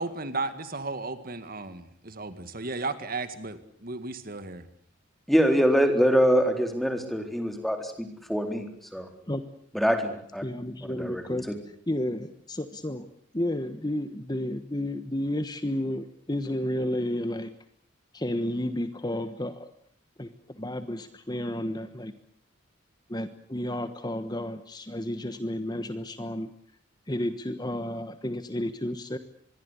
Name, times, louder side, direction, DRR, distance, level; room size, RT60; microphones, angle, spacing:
voice 1, 0.0-4.7, right 3 dB, 45° right, 11 dB, 2.0 m, -34 dB
voice 2, 5.3-8.7 8.9-9.1 9.7-10.4 10.9-11.2, equal, ahead, 5 dB, 3.9 m, -24 dB
voice 3, 10.4-11.5 11.9-13.1 13.3-17.5 18.1-19.7 20.2-22.1 23.1-26.5 27.1-29.2, left 1 dB, 20° left, 10 dB, 1.2 m, -31 dB
25.5 x 22.0 x 8.2 m, 0.65 s
head